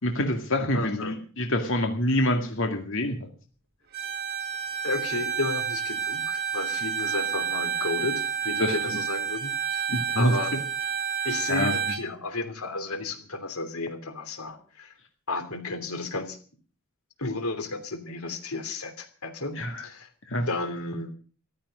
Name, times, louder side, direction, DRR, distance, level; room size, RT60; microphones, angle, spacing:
voice 1, 0.0-3.3 8.6-8.8 9.9-10.3 11.5-11.7 19.6-19.9 20.3-20.5, left 1 dB, 60° left, 4 dB, 2.1 m, -26 dB
voice 2, 0.7-1.2 4.8-9.9 10.2-10.5 11.2-14.9 15.3-16.4 17.2-20.1 20.5-21.1, left 3 dB, 90° left, 9 dB, 2.9 m, -33 dB
Bowed string instrument, 3.9-12.0, right 7 dB, 50° right, 3.0 m, -30 dB
14.5 x 12.5 x 6.4 m, 0.41 s
head